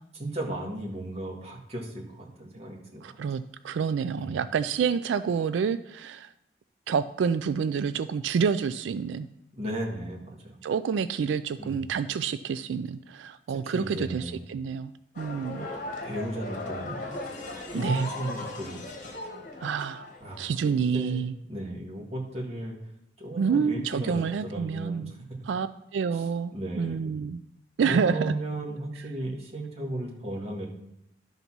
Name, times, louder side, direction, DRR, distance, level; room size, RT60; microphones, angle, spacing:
voice 1, 0.1-3.2 4.2-4.3 9.5-10.6 11.6-11.8 13.6-14.4 16.0-17.1 17.5-18.8 20.2-22.8 23.2-25.2 26.1-26.2 26.5-27.0 27.9-30.7, right 1 dB, 35° right, -1 dB, 1.8 m, -35 dB
voice 2, 3.0-6.3 6.9-9.3 10.6-15.7 17.7-18.1 19.6-20.1 20.4-21.3 23.4-25.1 25.5-27.4 27.8-28.3, right 6 dB, 90° right, 12 dB, 0.3 m, -28 dB
sound 1, 15.1-20.9, left 2 dB, 45° left, 1.3 m, -37 dB
12.0 x 4.0 x 5.9 m, 0.82 s
head